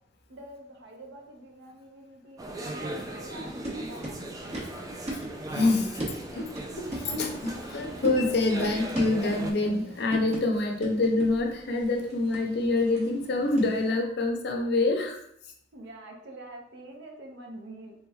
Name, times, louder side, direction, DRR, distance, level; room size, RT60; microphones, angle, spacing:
voice 1, 0.3-4.2 15.7-17.9, right 1 dB, 65° right, 1 dB, 0.7 m, -46 dB
sound 1, 2.4-9.5, right 1 dB, 20° right, 0.3 m, -38 dB
sound 2, 3.4-13.9, right 1 dB, 35° right, 0.8 m, -40 dB
voice 2, 5.5-6.0 6.3-6.5 6.8-15.2, left 2 dB, 60° left, 3 dB, 0.6 m, -26 dB
3.4 x 3.0 x 2.3 m, 0.70 s
head